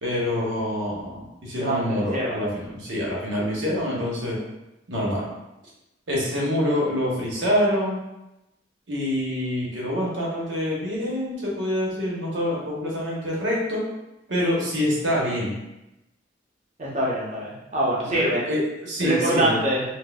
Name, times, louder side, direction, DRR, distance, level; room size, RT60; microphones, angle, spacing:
voice 1, 0.0-4.4 4.9-5.2 6.1-8.0 8.9-13.8 14.3-15.6 18.2-19.6, left 1 dB, 75° right, -4 dB, 1.0 m, -26 dB
voice 2, 1.6-2.5 16.8-18.4 19.0-19.8, right 1 dB, 40° right, -4 dB, 0.8 m, -24 dB
4.1 x 2.1 x 2.3 m, 0.94 s
head